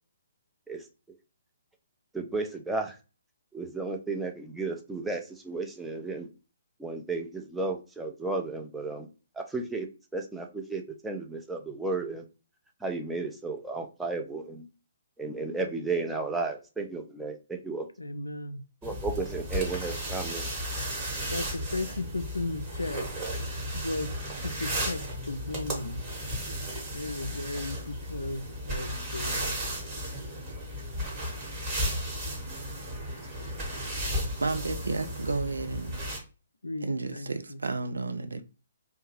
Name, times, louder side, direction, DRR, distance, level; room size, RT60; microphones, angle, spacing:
voice 1, 2.1-3.0 3.5-6.3 6.8-9.1 9.4-12.3 12.8-14.7 15.2-17.9 18.8-20.4, right 3 dB, 5° right, 0.4 m, -33 dB
voice 2, 18.0-18.6 21.3-23.1 23.7-24.1 24.3-25.0 25.3-26.0 26.9-29.6 36.6-37.6, left 2 dB, 80° left, 0.3 m, -35 dB
sound 1, 18.8-36.2, equal, 25° right, 1.2 m, -34 dB
voice 3, 34.4-36.0 36.8-38.4, right 3 dB, 70° right, 0.4 m, -32 dB
2.7 x 2.2 x 2.9 m
figure-of-eight pair, 130°, 0 cm